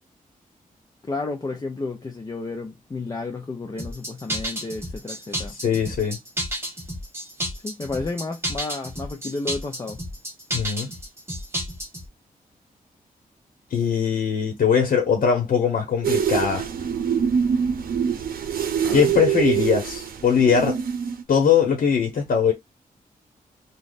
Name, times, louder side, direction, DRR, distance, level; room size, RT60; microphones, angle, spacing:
voice 1, 1.0-5.6 7.6-10.0 18.8-19.1, left 3 dB, 25° left, 0.6 m, -32 dB
sound 1, 3.8-12.1, equal, 15° right, 1.2 m, -31 dB
voice 2, 5.6-6.2 10.5-10.9 13.7-16.7 18.9-20.8 21.3-22.5, left 7 dB, 70° left, 1.1 m, -21 dB
sound 2, 16.0-21.2, right 7 dB, 85° right, 0.6 m, -24 dB
3.1 x 2.4 x 4.0 m
wide cardioid pair, 145°, 15 cm